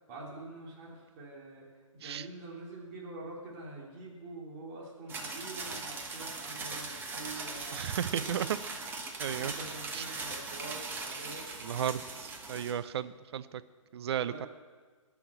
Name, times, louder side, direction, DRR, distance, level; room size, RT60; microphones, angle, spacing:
voice 1, 0.1-1.7 1.9-8.5 9.4-11.4 14.1-14.5, right 2 dB, 35° right, -3 dB, 2.9 m, -45 dB
sound 1, 5.1-12.7, right 3 dB, 10° right, 1.1 m, -40 dB
voice 2, 7.7-8.5 9.2-9.5 9.9-10.0 11.6-13.6 13.9-14.5, right 9 dB, 50° right, 15 dB, 0.5 m, -34 dB
13.0 x 6.0 x 8.0 m, 1.4 s
figure-of-eight pair, 135°, 17 cm